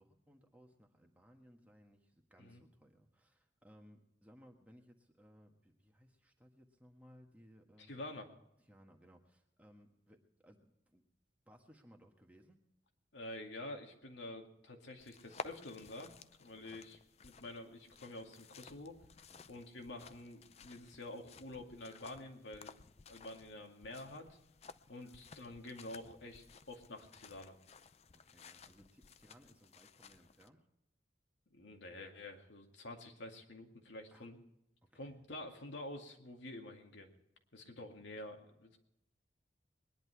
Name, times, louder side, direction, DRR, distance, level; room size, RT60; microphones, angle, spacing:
voice 1, 0.0-7.9 8.7-11.0 11.4-12.6 16.6-16.9 19.3-19.5 25.0-25.2 28.2-30.7 34.1-34.3 34.8-35.2 38.0-38.1, equal, 10° right, 2 dB, 1.5 m, -63 dB
voice 2, 7.8-8.3 13.1-16.1 16.4-19.0 19.5-22.7 23.1-24.4 24.9-27.6 31.5-34.4 34.9-37.1 37.5-38.8, left 1 dB, 75° left, 2 dB, 2.3 m, -48 dB
sound 1, 15.0-30.5, left 5 dB, 35° left, 0.5 m, -55 dB
21.5 x 11.0 x 4.6 m, 0.84 s
head